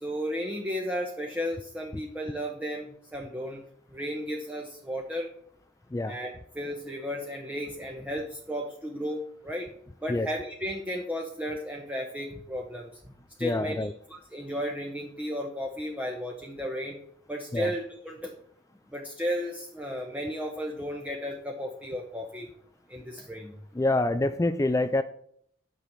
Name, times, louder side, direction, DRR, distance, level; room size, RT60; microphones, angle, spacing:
voice 1, 0.0-3.6 3.9-5.3 6.1-9.7 10.0-12.9 13.4-17.0 17.3-18.3 18.9-22.5 22.9-23.5, equal, 5° right, 0 dB, 1.1 m, -34 dB
voice 2, 13.4-13.9 17.5-17.7 23.7-25.0, left 2 dB, 15° left, 11 dB, 0.3 m, -26 dB
9.9 x 7.0 x 5.8 m, 0.65 s
head